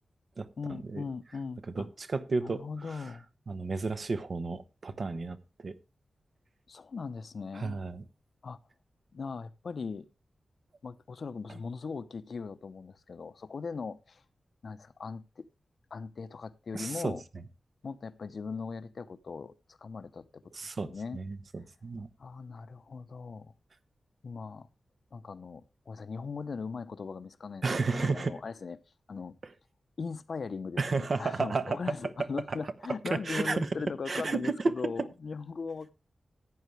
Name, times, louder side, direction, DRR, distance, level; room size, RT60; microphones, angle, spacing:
voice 1, 0.6-1.9 2.4-3.3 6.7-7.8 8.4-8.6 9.1-10.1 10.8-14.2 14.6-15.5 15.9-17.2 17.8-20.4 20.7-21.2 22.2-23.5 24.2-24.7 25.1-28.8 29.1-29.4 30.0-35.9, left 5 dB, 55° left, 0.8 m, -39 dB
voice 2, 1.7-2.6 3.5-5.7 7.6-8.0 16.7-17.1 20.5-22.1 27.6-28.4 30.8-31.8 33.1-33.7 34.1-34.7, right 3 dB, 50° right, 0.9 m, -32 dB
14.0 x 9.4 x 3.2 m
wide cardioid pair, 145°, 0 cm